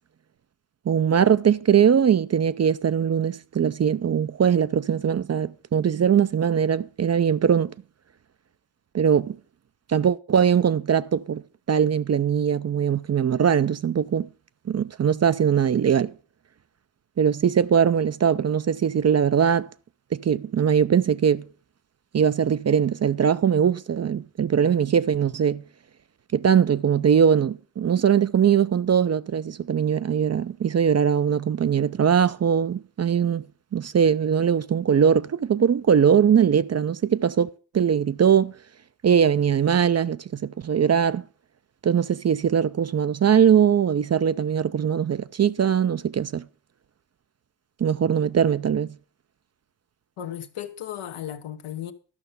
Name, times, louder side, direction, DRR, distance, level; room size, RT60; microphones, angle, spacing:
voice 1, 0.9-7.7 8.9-9.4 9.9-11.4 11.7-14.3 14.7-16.1 17.2-19.7 20.1-21.5 22.1-25.6 26.3-33.4 33.7-37.5 37.7-38.5 39.0-41.2 41.8-46.4 47.8-48.9, right 8 dB, 35° right, 0.4 m, -21 dB
voice 2, 50.2-51.9, left 10 dB, 85° left, 1.0 m, -35 dB
12.0 x 5.6 x 6.6 m
cardioid pair, 55°, 48 cm